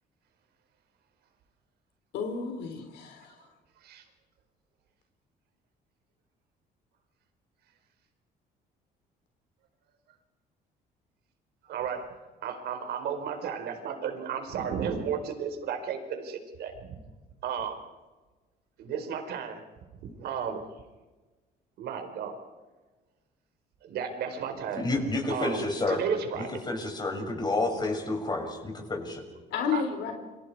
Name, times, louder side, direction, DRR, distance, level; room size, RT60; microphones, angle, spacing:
voice 1, 2.1-3.5 29.5-30.1, left 6 dB, 80° left, 4 dB, 4.0 m, -32 dB
voice 2, 11.6-17.0 17.4-17.8 18.8-19.6 20.0-20.7 21.8-22.4 23.8-24.9 25.3-26.5 29.7-29.8, right 7 dB, 70° right, 6 dB, 4.6 m, -33 dB
voice 3, 24.8-26.0 26.3-29.2, left 2 dB, 25° left, 3 dB, 6.9 m, -30 dB
29.5 x 25.5 x 4.8 m, 1.2 s
cardioid pair, 110°, 17 cm